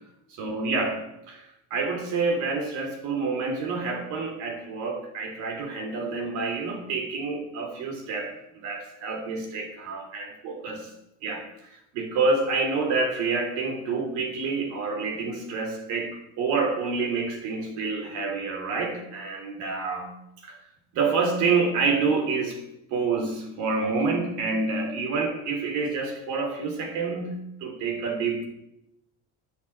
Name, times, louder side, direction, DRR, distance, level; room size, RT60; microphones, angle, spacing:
voice 1, 0.3-1.0 1.3-10.9 11.2-20.1 20.4-20.6 20.9-22.6 22.9-28.5, right 4 dB, 65° right, 4 dB, 3.2 m, -28 dB
10.5 x 8.4 x 8.0 m, 0.84 s
cardioid pair, 180°, 32 cm